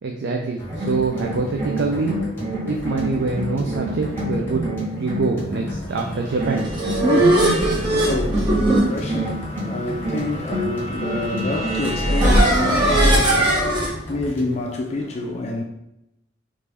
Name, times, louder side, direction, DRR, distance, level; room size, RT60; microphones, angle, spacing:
voice 1, 0.0-2.2 2.6-4.7 4.9-6.7, right 4 dB, 60° right, 0.4 m, -25 dB
sound 1, 0.6-14.6, equal, 10° left, 1.0 m, -34 dB
sound 2, 0.7-5.9 6.4-8.0 9.1-12.9, right 1 dB, 45° right, 1.4 m, -29 dB
sound 3, 6.4-13.9, right 1 dB, 25° right, 0.8 m, -20 dB
voice 2, 7.3-15.6, left 2 dB, 35° left, 0.3 m, -28 dB
3.3 x 2.5 x 3.3 m
head